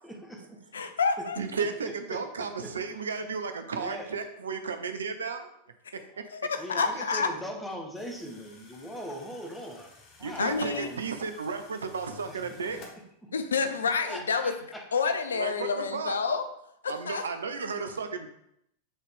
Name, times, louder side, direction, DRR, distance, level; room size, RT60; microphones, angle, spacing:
voice 1, 0.0-0.9 1.2-1.3 1.5-3.0 3.7-4.1 6.6-11.0 12.3-12.4 13.2-13.3 14.0-14.9, equal, 5° left, 1 dB, 1.3 m, -41 dB
voice 2, 0.7-1.4 5.9-6.0 6.3-7.3 10.4-10.9 13.3-14.5 14.9-16.5 16.8-17.2, left 5 dB, 70° left, 9 dB, 0.5 m, -28 dB
voice 3, 1.4-5.5 5.9-6.2 10.2-12.8 15.3-16.2 16.9-18.3, right 5 dB, 70° right, 8 dB, 0.6 m, -34 dB
sound 1, 7.9-12.9, left 3 dB, 35° left, 1.3 m, -53 dB
7.9 x 4.0 x 3.5 m, 0.75 s
figure-of-eight pair, 90°, 0 cm